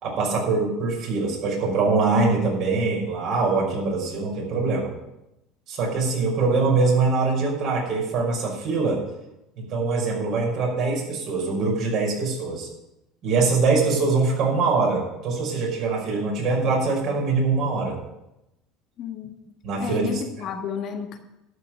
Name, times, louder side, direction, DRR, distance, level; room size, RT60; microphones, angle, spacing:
voice 1, 0.0-4.9 5.7-9.0 9.6-12.7 13.2-18.0 19.6-20.2, right 4 dB, 55° right, -2 dB, 5.7 m, -23 dB
voice 2, 19.0-19.3 19.8-21.2, left 7 dB, 55° left, 5 dB, 1.6 m, -31 dB
12.5 x 5.8 x 9.0 m, 0.90 s
supercardioid pair, 105°, 0 cm